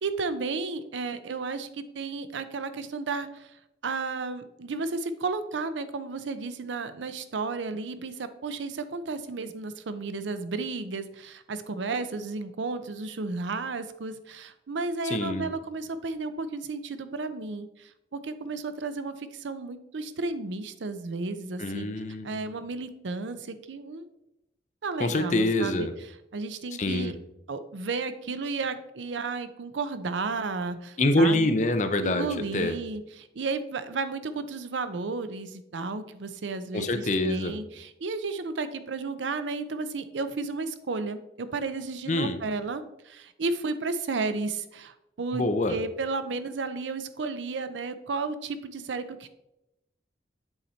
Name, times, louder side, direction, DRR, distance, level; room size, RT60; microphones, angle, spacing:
voice 1, 0.0-3.6 3.8-21.9 22.2-24.1 24.8-25.9 26.3-27.1 27.5-31.5 32.0-45.4 45.7-49.3, right 3 dB, 85° right, 11 dB, 0.6 m, -33 dB
voice 2, 15.0-15.5 21.6-22.4 25.0-25.9 26.8-27.1 31.0-32.3 32.5-32.8 36.7-37.6 42.1-42.4 45.3-45.8, left 2 dB, 40° left, 8 dB, 0.6 m, -25 dB
7.8 x 4.2 x 4.4 m, 0.88 s
head